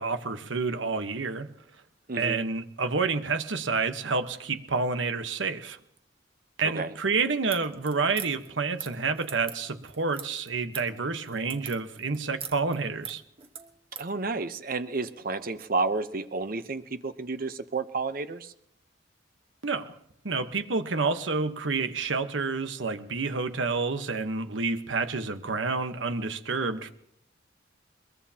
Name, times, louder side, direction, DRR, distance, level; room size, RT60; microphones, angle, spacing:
voice 1, 0.0-1.5 2.2-5.8 6.6-13.2 19.6-20.0 20.2-26.9, right 4 dB, 85° right, 8 dB, 1.2 m, -29 dB
voice 2, 2.1-2.4 6.6-6.9 14.0-18.5, right 3 dB, 50° right, 10 dB, 0.8 m, -31 dB
sound 1, 7.5-14.1, right 7 dB, 30° right, 1.2 m, -43 dB
22.0 x 22.0 x 2.9 m, 0.75 s
head